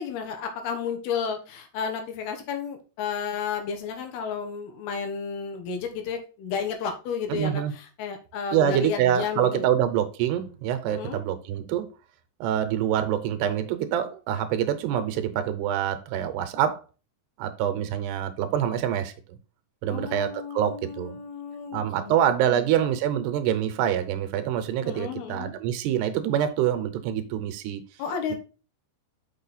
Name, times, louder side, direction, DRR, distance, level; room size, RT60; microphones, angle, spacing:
voice 1, 0.0-9.7 10.9-11.2 19.9-22.2 22.4-22.8 24.8-25.5 28.0-28.4, left 6 dB, 70° left, 3.0 m, -32 dB
voice 2, 7.3-7.7 8.5-11.9 12.4-16.8 17.4-19.1 19.8-21.2 21.7-27.8, right 10 dB, 80° right, 2.8 m, -26 dB
6.3 x 6.2 x 4.1 m
omnidirectional pair, 4.9 m